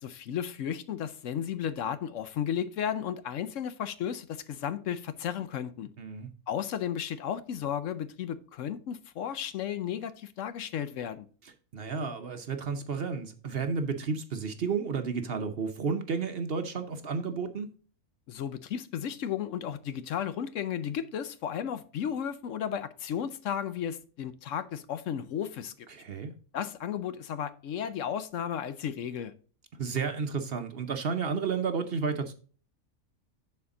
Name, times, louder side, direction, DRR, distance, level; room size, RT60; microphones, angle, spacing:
voice 1, 0.0-5.9 6.5-11.3 18.3-25.9 26.5-29.3, left 9 dB, 70° left, 0.9 m, -34 dB
voice 2, 6.0-6.3 11.7-17.7 25.9-26.3 29.8-32.3, right 5 dB, 50° right, 0.9 m, -32 dB
11.0 x 4.3 x 3.7 m
omnidirectional pair, 1.5 m